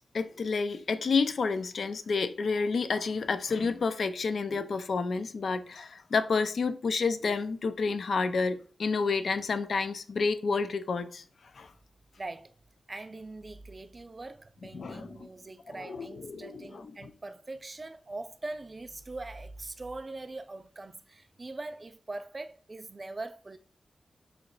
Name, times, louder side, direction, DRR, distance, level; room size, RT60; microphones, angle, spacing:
voice 1, 0.1-11.2 11.6-11.7 14.7-15.3 15.8-16.9, left 4 dB, 65° left, 0.3 m, -30 dB
voice 2, 12.2-12.5 12.9-23.6, right 2 dB, 30° right, 0.3 m, -42 dB
3.1 x 2.9 x 3.8 m
wide cardioid pair, 140°, 0 cm